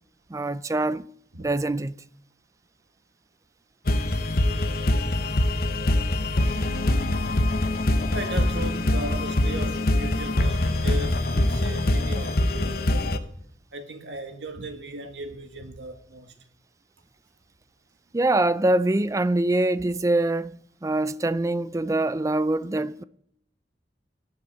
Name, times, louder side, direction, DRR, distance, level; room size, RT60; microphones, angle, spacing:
voice 1, 0.3-1.1 1.4-1.9 18.1-23.0, right 2 dB, 15° right, 0.4 m, -24 dB
sound 1, 3.9-13.2, left 1 dB, 55° left, 1.0 m, -24 dB
voice 2, 8.1-13.3 13.7-16.3, right 1 dB, 75° right, 1.8 m, -37 dB
13.5 x 6.0 x 9.8 m
head